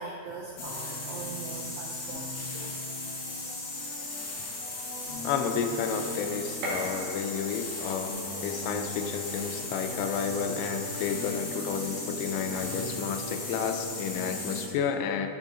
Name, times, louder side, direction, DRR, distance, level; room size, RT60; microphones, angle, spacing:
voice 1, 0.0-3.0, right 3 dB, 85° right, 0 dB, 2.4 m, -41 dB
sound 1, 0.5-14.8, left 1 dB, 65° left, 3.3 m, -43 dB
sound 2, 0.6-14.7, left 2 dB, 50° left, 2.9 m, -37 dB
Gunshot gunfire, 3.9-13.9, right 1 dB, 55° right, 2.5 m, -45 dB
voice 2, 5.2-15.3, left 6 dB, 85° left, 6 dB, 2.9 m, -31 dB
11.0 x 7.4 x 2.7 m, 2.7 s
omnidirectional pair, 5.6 m